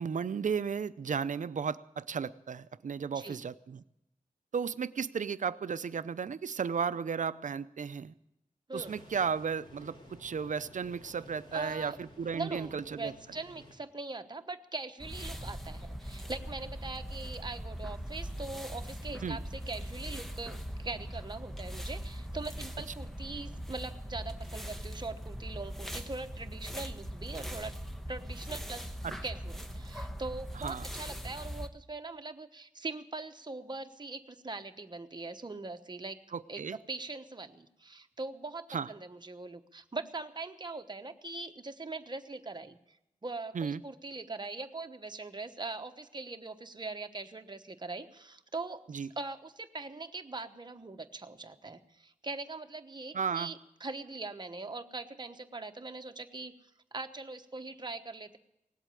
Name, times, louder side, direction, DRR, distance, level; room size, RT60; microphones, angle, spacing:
voice 1, 0.0-3.8 4.5-8.1 8.7-13.1 19.2-19.4 29.0-29.1 30.6-30.8 36.3-36.8 38.7-38.9 43.5-43.8 48.9-49.1 53.1-53.5, right 6 dB, 65° right, 15 dB, 0.6 m, -34 dB
sound 1, 8.7-13.7, left 1 dB, 40° left, 4.5 m, -54 dB
voice 2, 11.5-12.0 12.3-27.7 28.1-28.9 29.2-36.2 36.5-43.0 43.2-48.8 49.2-58.4, right 3 dB, 30° right, 6 dB, 1.1 m, -41 dB
sound 2, 15.0-31.7, equal, ahead, 1.1 m, -41 dB
18.5 x 8.2 x 9.0 m, 0.85 s
wide cardioid pair, 85°, 14 cm